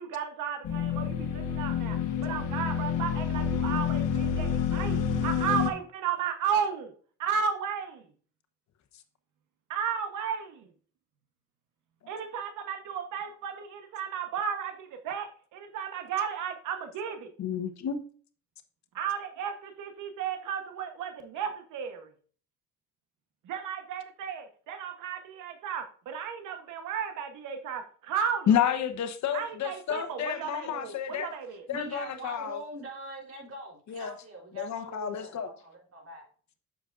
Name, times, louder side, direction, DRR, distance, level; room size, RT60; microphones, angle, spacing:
voice 1, 0.0-6.9 7.2-8.0 9.7-10.7 12.1-17.3 18.9-22.1 23.4-28.5 29.3-31.7, right 7 dB, 90° right, 1.2 m, -34 dB
sound 1, 0.6-5.7, left 7 dB, 85° left, 1.2 m, -28 dB
voice 2, 17.4-18.0 28.5-31.3 31.7-32.6 33.9-34.1 34.5-35.5, left 8 dB, 65° left, 1.1 m, -30 dB
voice 3, 31.7-36.2, right 1 dB, 55° right, 3.8 m, -42 dB
8.2 x 6.9 x 2.5 m
cardioid pair, 90°, 30 cm